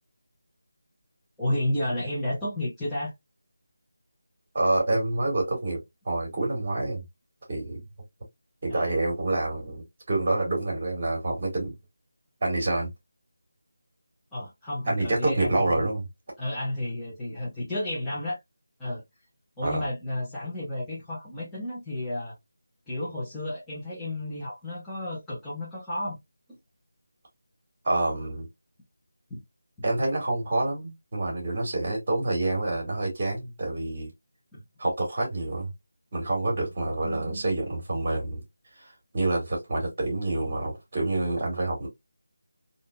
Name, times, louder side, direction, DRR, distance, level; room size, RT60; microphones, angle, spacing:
voice 1, 1.4-3.1 8.7-8.9 14.3-15.8 16.4-18.4 18.8-19.0 19.6-22.3 22.9-26.2 26.5-26.6 29.3-29.4 29.8-29.9 34.5-34.6, left 1 dB, 5° left, 1.1 m, -32 dB
voice 2, 4.5-5.8 6.1-7.0 7.5-7.8 8.6-11.7 12.4-12.9 14.9-16.0 19.6-19.7 27.8-28.5 29.8-34.1 34.8-35.7 36.1-38.4 38.8-41.9, right 2 dB, 35° right, 1.8 m, -27 dB
3.5 x 2.7 x 2.3 m
figure-of-eight pair, 160°, 0 cm